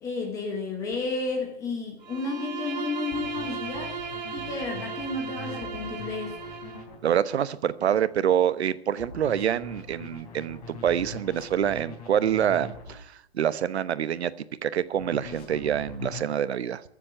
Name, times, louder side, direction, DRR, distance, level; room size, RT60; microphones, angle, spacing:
voice 1, 0.0-4.0 4.3-6.4, left 3 dB, 10° left, 1.2 m, -32 dB
sound 1, 0.9-1.0 3.1-7.0 9.0-13.0 15.0-16.3, left 3 dB, 35° left, 3.3 m, -42 dB
Bowed string instrument, 2.0-6.9, right 5 dB, 40° right, 1.5 m, -36 dB
voice 2, 7.0-14.3 14.6-16.8, right 9 dB, 70° right, 1.0 m, -26 dB
14.5 x 7.7 x 10.0 m
hypercardioid pair, 180°, 34 cm